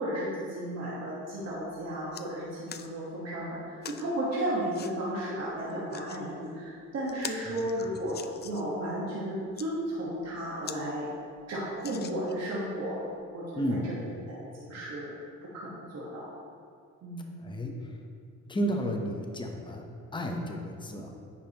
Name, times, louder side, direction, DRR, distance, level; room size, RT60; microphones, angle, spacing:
voice 1, 0.0-8.2 8.4-11.1 11.5-13.0 13.3-15.1 15.5-16.3 17.0-17.3, right 1 dB, 60° right, -7 dB, 1.5 m, -34 dB
sound 1, 1.4-1.6 1.9-2.3 2.7-2.9 3.8-4.1 4.7-4.9 5.7-6.2 6.7-6.8 7.1-8.7 9.4-9.7 10.2-10.3 10.6-10.8 11.2-11.3 11.8-12.5 13.2-13.3, left 7 dB, 35° left, 0.4 m, -43 dB
voice 2, 13.6-13.9 17.4-18.1 18.5-21.1, equal, 15° left, 2 dB, 0.8 m, -33 dB
9.8 x 5.1 x 3.0 m, 2.3 s
cardioid pair, 90°, 30 cm